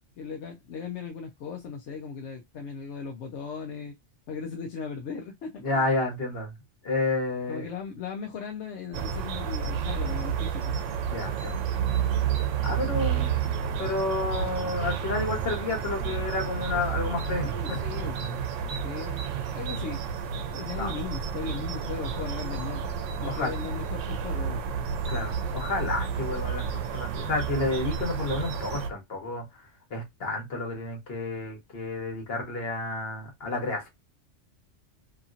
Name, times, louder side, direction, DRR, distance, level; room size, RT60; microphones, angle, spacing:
voice 1, 0.2-4.0 4.3-5.9 7.5-10.8 17.4-18.5 18.8-20.0 20.5-22.9 23.2-24.6, left 5 dB, 70° left, 0.9 m, -37 dB
voice 2, 5.6-6.5 6.8-7.7 11.1-11.6 12.6-13.3 13.8-17.8 20.8-20.9 23.2-23.5 25.1-29.6 29.9-33.9, left 2 dB, 55° left, 1.3 m, -30 dB
sound 1, 8.9-28.9, right 7 dB, 80° right, 0.9 m, -30 dB
2.9 x 2.7 x 2.4 m
omnidirectional pair, 1.3 m